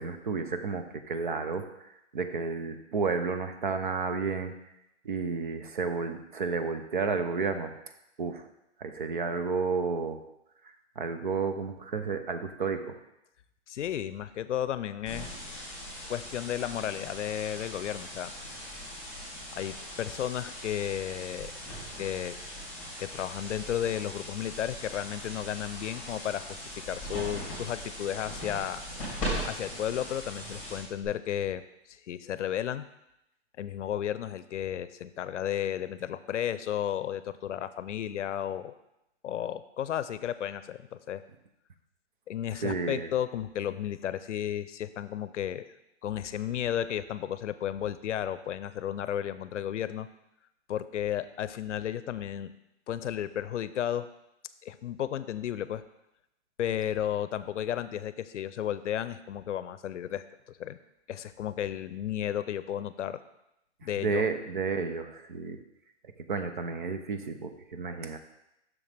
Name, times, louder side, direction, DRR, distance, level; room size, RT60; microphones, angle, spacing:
voice 1, 0.0-4.5 5.0-7.7 8.2-8.4 8.8-10.2 11.0-13.0 42.6-43.1 64.0-65.6 66.3-68.2, right 4 dB, 45° right, 8 dB, 0.6 m, -31 dB
voice 2, 13.7-15.3 16.1-18.3 19.5-21.5 22.0-22.4 23.0-28.8 29.4-31.6 31.9-32.9 33.6-38.7 39.2-41.2 42.3-45.7 46.0-50.1 50.7-52.5 52.9-54.1 54.6-55.8 56.6-60.8 61.1-63.2 63.8-64.2, left 10 dB, 80° left, 14 dB, 0.6 m, -33 dB
sound 1, 15.1-31.1, equal, 5° left, 2.7 m, -40 dB
7.1 x 6.4 x 3.4 m, 0.86 s
hypercardioid pair, 175°, 35 cm